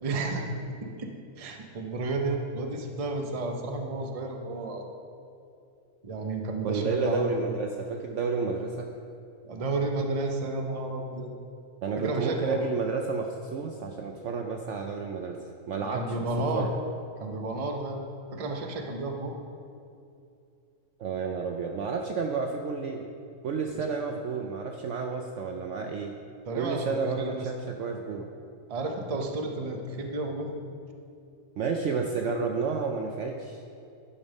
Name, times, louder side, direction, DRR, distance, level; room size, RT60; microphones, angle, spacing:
voice 1, 0.0-0.5 0.8-4.8 6.0-7.5 9.4-11.3 12.0-12.7 15.9-16.7 17.2-18.0 18.3-19.4 26.5-27.5 28.7-30.6, right 2 dB, 30° right, 3 dB, 0.7 m, -32 dB
voice 2, 6.6-8.9 11.8-15.4 15.7-16.7 21.0-23.0 23.4-26.1 26.6-28.3 31.6-33.6, right 4 dB, 65° right, 3 dB, 0.8 m, -31 dB
11.0 x 5.4 x 5.3 m, 2.6 s
omnidirectional pair, 1.6 m